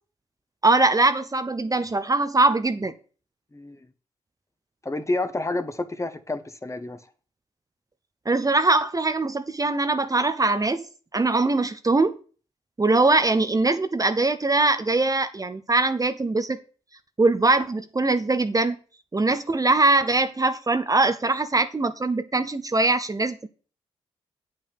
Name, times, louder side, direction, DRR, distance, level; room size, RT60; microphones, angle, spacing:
voice 1, 0.6-2.9 8.3-10.9 11.1-12.2 12.8-16.6 17.2-18.8 19.1-23.5, right 3 dB, 25° right, 0.9 m, -22 dB
voice 2, 4.8-7.0, left 2 dB, 20° left, 1.3 m, -29 dB
8.6 x 5.6 x 6.8 m
supercardioid pair, 45°, 13 cm